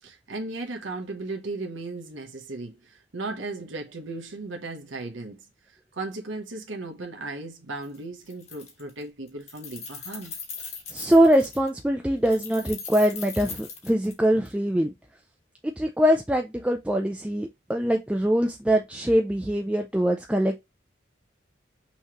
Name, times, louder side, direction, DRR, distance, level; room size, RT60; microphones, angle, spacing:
voice 1, 0.0-10.3, right 2 dB, 85° right, 1.0 m, -36 dB
Keys jangling, 7.8-8.0 8.3-9.0 9.3-11.7 12.2-14.5, left 5 dB, 35° left, 1.3 m, -39 dB
voice 2, 10.9-14.9 15.6-20.6, equal, 5° right, 0.3 m, -23 dB
5.6 x 3.1 x 2.9 m
head